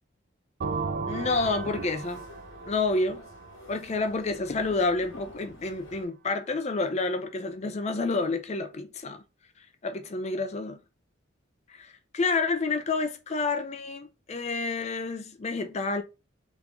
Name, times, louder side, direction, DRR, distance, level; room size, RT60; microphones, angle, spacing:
sound 1, 0.6-4.3, right 4 dB, 50° right, 0.4 m, -35 dB
sound 2, 1.1-6.1, left 2 dB, 80° left, 1.4 m, -50 dB
voice 1, 1.1-2.2 2.7-3.2 3.7-9.2 9.8-10.8 11.7-16.0, left 3 dB, 35° left, 0.5 m, -29 dB
3.8 x 3.0 x 3.5 m
head